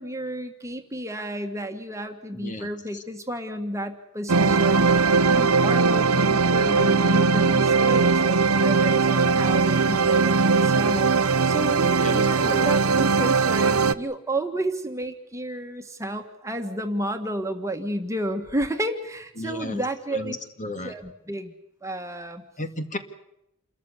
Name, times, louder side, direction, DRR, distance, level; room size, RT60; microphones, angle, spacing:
voice 1, 0.0-20.4 20.8-21.5 21.8-22.4, right 1 dB, 15° right, 5 dB, 1.7 m, -31 dB
voice 2, 2.3-2.7 12.0-12.7 19.4-19.8 20.1-20.9 22.6-23.0, left 1 dB, 35° left, 7 dB, 2.2 m, -33 dB
sound 1, 4.3-13.9, right 4 dB, 75° right, 0.9 m, -20 dB
28.5 x 14.0 x 9.9 m, 0.82 s
head